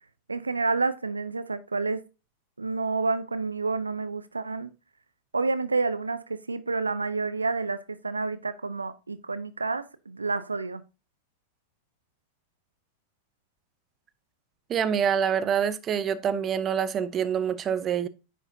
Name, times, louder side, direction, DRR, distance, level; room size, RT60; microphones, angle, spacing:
voice 1, 0.3-2.0 2.6-4.7 5.3-10.8, right 3 dB, 80° right, 0.5 m, -29 dB
voice 2, 14.7-18.1, right 8 dB, 25° right, 0.7 m, -26 dB
9.8 x 6.4 x 2.7 m
figure-of-eight pair, 90°, 0 cm